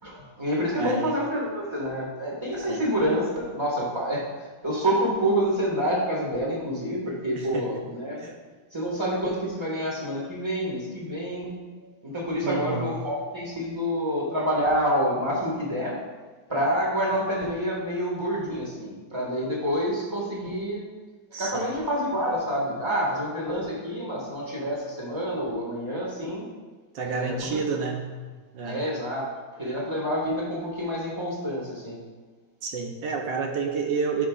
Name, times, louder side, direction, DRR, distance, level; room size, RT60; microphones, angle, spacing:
voice 1, 0.0-4.3 4.6-8.2 8.7-16.0 16.5-20.8 21.3-26.5 27.0-27.6 28.6-29.3 29.6-32.0, equal, 15° right, -4 dB, 1.7 m, -28 dB
voice 2, 0.8-1.1 2.7-2.8 7.4-7.7 8.2-8.4 12.4-13.0 21.3-21.7 26.9-28.1 28.5-28.9 32.6-34.3, right 5 dB, 70° right, 2 dB, 1.4 m, -30 dB
12.0 x 6.1 x 2.5 m, 1.4 s
omnidirectional pair, 2.2 m